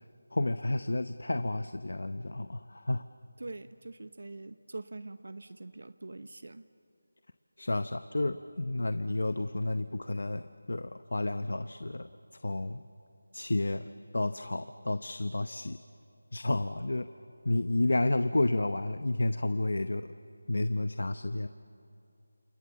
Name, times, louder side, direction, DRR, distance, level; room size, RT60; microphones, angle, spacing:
voice 1, 0.3-3.1 7.6-12.1 12.4-12.8 13.3-13.8 14.1-15.8 16.3-17.1 17.4-20.1 20.5-21.5, left 2 dB, 75° left, 11 dB, 0.8 m, -31 dB
voice 2, 3.4-6.6, right 2 dB, 70° right, 12 dB, 0.8 m, -44 dB
29.0 x 28.5 x 7.2 m, 2.6 s
figure-of-eight pair, 175°, 0 cm